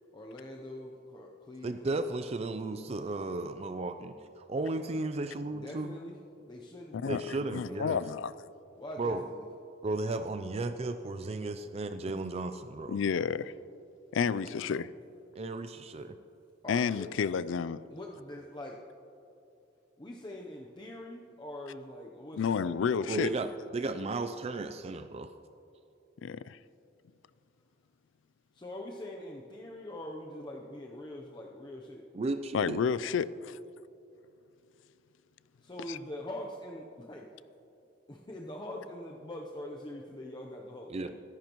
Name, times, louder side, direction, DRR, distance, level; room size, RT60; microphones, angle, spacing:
voice 1, 0.1-2.0 5.5-6.1 6.5-7.9 8.8-9.5 14.3-14.5 16.6-17.2 17.9-18.8 20.0-23.2 28.5-32.0 35.6-37.3 38.1-41.2, left 1 dB, 25° left, -1 dB, 0.7 m, -43 dB
voice 2, 1.6-6.0 7.1-8.0 9.0-9.2 9.8-13.0 15.4-16.2 23.1-25.3 32.1-32.8 40.9-41.1, right 2 dB, 30° right, 9 dB, 0.4 m, -34 dB
voice 3, 6.9-8.3 12.9-13.5 14.1-14.9 16.7-17.8 22.4-23.3 26.2-26.6 32.5-33.6 35.8-36.0, left 6 dB, 75° left, 17 dB, 0.4 m, -30 dB
23.0 x 10.5 x 3.0 m, 2.8 s
head